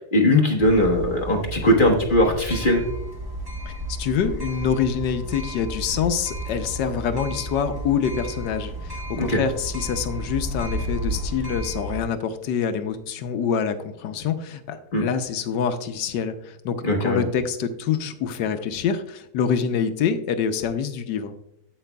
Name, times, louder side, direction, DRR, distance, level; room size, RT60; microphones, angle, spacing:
voice 1, 0.1-2.8 9.1-9.4 14.9-15.0 16.8-17.2, left 1 dB, 30° left, 1 dB, 1.2 m, -19 dB
sound 1, 0.6-12.0, right 1 dB, 30° right, 0.4 m, -32 dB
voice 2, 3.7-21.3, left 7 dB, 75° left, 9 dB, 1.3 m, -26 dB
8.7 x 8.1 x 2.2 m, 0.78 s
omnidirectional pair, 1.9 m